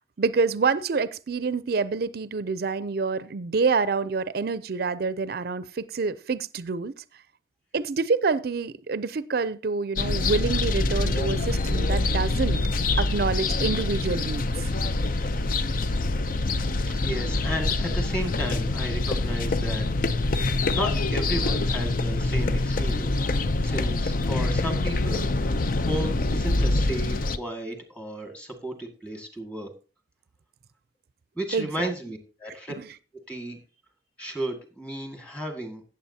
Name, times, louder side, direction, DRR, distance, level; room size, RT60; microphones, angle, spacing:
voice 1, 0.2-6.9 7.7-12.6 13.0-14.7 31.5-31.9 32.8-32.9, right 4 dB, 60° right, 15 dB, 0.5 m, -27 dB
sound 1, 10.0-27.4, left 2 dB, 50° left, 0.5 m, -25 dB
voice 2, 16.6-19.9 20.2-20.4 20.7-29.7 31.4-32.7 33.3-33.6 34.2-35.8, right 1 dB, 5° left, 4 dB, 1.8 m, -34 dB
16.0 x 7.5 x 2.8 m, 0.34 s
head